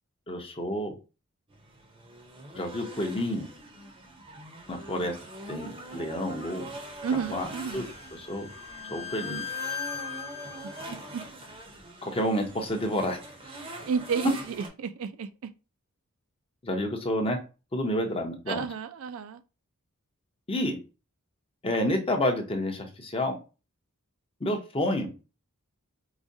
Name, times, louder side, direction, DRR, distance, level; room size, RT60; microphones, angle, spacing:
voice 1, 0.3-0.9 2.5-3.5 4.7-5.2 5.5-6.7 7.3-7.5 7.7-7.8 8.2-8.5 8.8-9.4 12.0-13.2 16.6-17.4 17.7-18.6 20.5-20.8 21.6-23.4 24.4-25.1, left 1 dB, 25° left, 0.6 m, -29 dB
sound 1, 1.5-14.7, right 2 dB, 25° right, 0.6 m, -43 dB
voice 2, 7.0-7.9 10.6-11.2 13.6-15.5 18.5-19.4, right 6 dB, 65° right, 0.4 m, -32 dB
Bowed string instrument, 7.1-10.9, left 8 dB, 70° left, 0.8 m, -38 dB
4.8 x 2.2 x 2.7 m
head